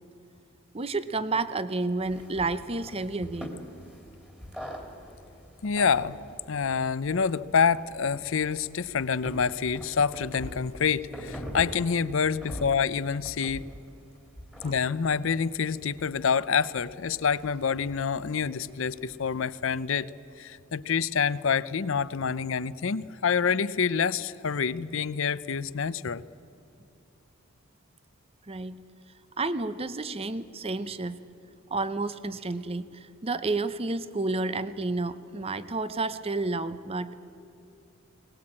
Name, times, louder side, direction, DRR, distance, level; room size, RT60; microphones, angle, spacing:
voice 1, 0.7-3.6 14.6-14.7 28.5-28.8 29.4-31.2 31.7-37.2, right 3 dB, 25° right, 14 dB, 0.6 m, -30 dB
sound 1, 2.0-19.8, equal, 5° right, 2.4 m, -44 dB
voice 2, 5.6-6.2 6.5-13.6 14.6-20.1 20.4-26.2, left 6 dB, 60° left, 17 dB, 0.5 m, -27 dB
21.5 x 19.0 x 8.7 m, 2.7 s
head